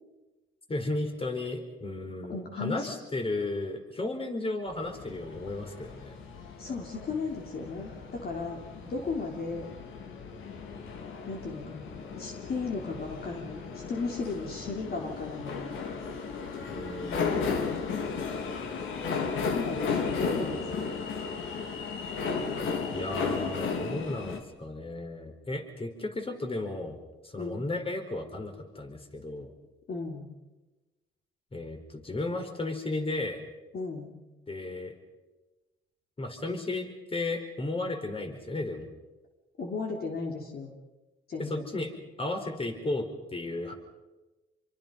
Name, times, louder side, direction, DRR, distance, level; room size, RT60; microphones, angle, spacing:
voice 1, 0.7-6.2 16.7-17.7 19.9-20.0 20.3-20.7 22.9-27.0 27.2-29.5 31.5-33.4 34.5-34.9 36.2-38.9 41.4-41.9 42.2-43.7, left 2 dB, 30° left, 5 dB, 4.6 m, -34 dB
voice 2, 2.3-2.9 6.6-9.6 11.3-11.9 12.2-15.6 19.4-20.9 27.4-27.6 29.9-30.3 33.7-34.2 39.6-40.7 41.3-41.7, left 4 dB, 50° left, 1 dB, 3.6 m, -35 dB
sound 1, 4.7-24.4, left 5 dB, 80° left, 3.1 m, -35 dB
27.5 x 24.0 x 5.4 m, 1.1 s
cardioid pair, 90°, 20 cm